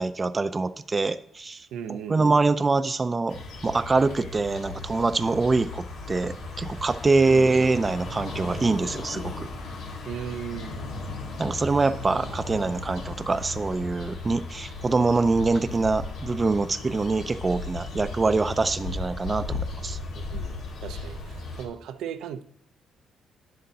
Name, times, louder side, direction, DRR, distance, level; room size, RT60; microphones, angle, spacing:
voice 1, 0.0-9.5 11.4-20.0, right 3 dB, 25° right, 0.4 m, -24 dB
voice 2, 1.7-2.4 10.1-10.9 20.1-22.4, right 8 dB, 85° right, 0.5 m, -37 dB
sound 1, 3.3-21.6, left 3 dB, 85° left, 1.6 m, -36 dB
9.4 x 7.6 x 2.8 m
cardioid pair, 90°, 0 cm